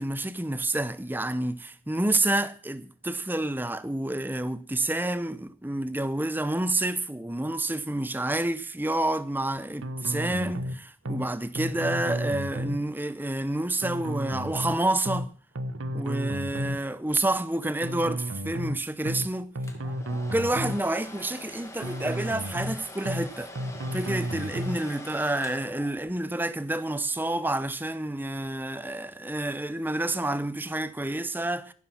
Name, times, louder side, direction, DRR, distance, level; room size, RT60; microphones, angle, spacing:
voice 1, 0.0-15.3 15.9-19.5 20.1-23.5 23.9-31.7, right 1 dB, 10° right, 0.7 m, -29 dB
sound 1, 9.8-10.8 11.1-11.3 11.6-12.8 13.8-14.8 15.1-15.3 15.6-16.8 17.8-18.8 19.1-19.3 19.6-20.8 21.8-22.8 23.1-23.3 23.6-24.8, equal, 80° right, 1.0 m, -32 dB
Domestic sounds home sounds, 19.6-26.3, left 2 dB, 15° left, 1.9 m, -44 dB
14.0 x 12.0 x 6.0 m
head